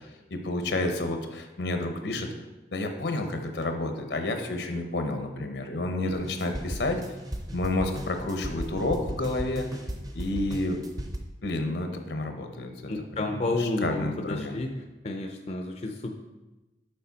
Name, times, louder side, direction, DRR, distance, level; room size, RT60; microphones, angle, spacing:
voice 1, 0.0-2.3 2.7-7.0 7.5-9.8 10.1-10.8 11.4-12.7 13.2-14.6, left 2 dB, 80° left, 5 dB, 0.8 m, -30 dB
sound 1, 6.1-11.2, equal, 20° right, 0.6 m, -36 dB
voice 2, 12.9-16.1, left 2 dB, 35° left, 3 dB, 0.4 m, -31 dB
6.9 x 4.8 x 4.0 m, 1.1 s
head